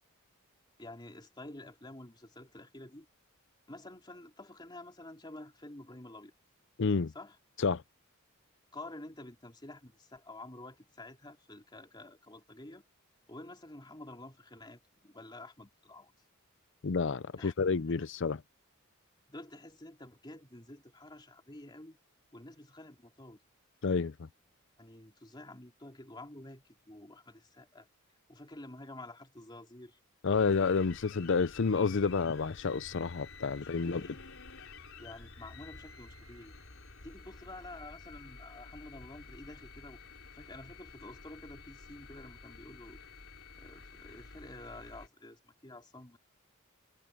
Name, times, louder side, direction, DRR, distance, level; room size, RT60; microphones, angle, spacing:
voice 1, 0.8-3.1 3.7-6.3 7.1-7.4 8.7-12.8 13.3-16.1 17.3-17.5 18.0-18.1 19.3-22.0 22.3-23.4 24.8-27.9 28.3-30.0 33.8-34.2 35.0-36.5 37.0-40.0 40.3-43.0 43.6-46.2, left 2 dB, 20° left, 3.2 m, -49 dB
voice 2, 6.8-7.1 7.6-7.8 16.8-18.4 23.8-24.3 30.2-34.0, left 4 dB, 60° left, 0.5 m, -29 dB
sound 1, 30.3-45.1, left 4 dB, 75° left, 3.7 m, -51 dB
head